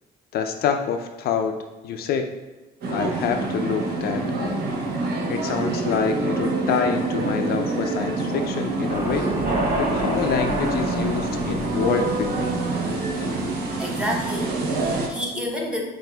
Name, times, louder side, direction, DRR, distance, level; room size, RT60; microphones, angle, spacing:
voice 1, 0.3-1.6 1.8-2.3 2.9-4.6 5.3-9.3 9.8-12.6, left 7 dB, 65° left, 6 dB, 0.4 m, -27 dB
sound 1, 2.8-15.1, right 2 dB, 65° right, 0.9 m, -26 dB
sound 2, 8.9-14.9, right 1 dB, 40° right, 1.4 m, -31 dB
voice 2, 13.8-15.8, equal, 5° right, -1 dB, 0.9 m, -29 dB
7.6 x 2.6 x 2.2 m, 1.2 s
cardioid pair, 110°, 17 cm